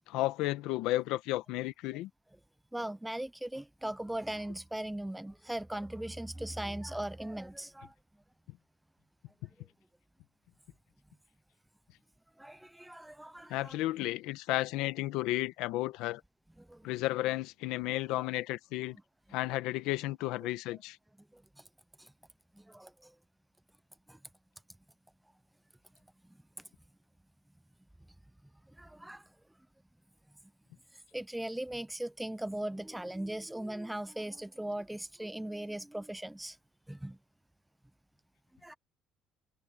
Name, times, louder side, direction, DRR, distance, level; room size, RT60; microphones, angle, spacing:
voice 1, 0.1-2.1 13.5-16.2 16.8-19.0 19.3-21.0, left 17 dB, 85° left, 1.1 m, -33 dB
voice 2, 2.7-7.9 12.4-13.8 16.6-16.9 21.3-21.4 22.0-22.1 22.6-23.1 24.1-24.2 28.8-29.2 31.1-36.6 36.9-37.2 38.6-38.7, right 1 dB, 5° right, 0.6 m, -39 dB
cardioid pair, 135°, 0 cm